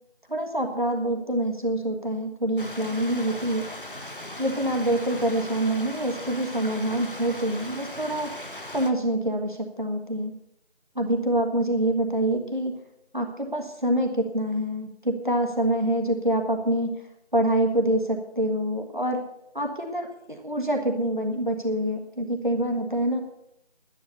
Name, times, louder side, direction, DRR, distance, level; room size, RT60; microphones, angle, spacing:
voice 1, 0.3-3.7 4.4-8.3 8.7-10.4 10.9-12.8 13.1-17.0 17.3-19.2 19.5-23.2, right 1 dB, 45° right, 3 dB, 1.5 m, -26 dB
Stream, 2.6-8.9, left 1 dB, 50° left, 1.3 m, -38 dB
11.5 x 10.5 x 6.7 m, 0.80 s
figure-of-eight pair, 180°, 34 cm